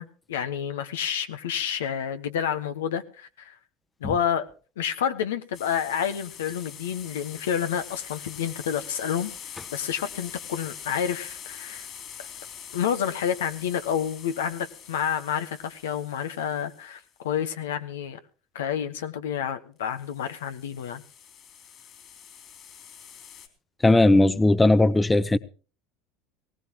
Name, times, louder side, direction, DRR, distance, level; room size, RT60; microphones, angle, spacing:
voice 1, 0.0-3.5 4.0-4.5 4.8-9.3 9.7-11.9 12.7-18.2 18.5-21.0, left 8 dB, 90° left, 1.3 m, -29 dB
sound 1, 5.5-17.0 19.9-23.5, left 8 dB, 45° left, 3.5 m, -44 dB
voice 2, 23.8-25.4, left 2 dB, 15° left, 0.9 m, -18 dB
19.5 x 18.0 x 3.0 m
hypercardioid pair, 90°, 0 cm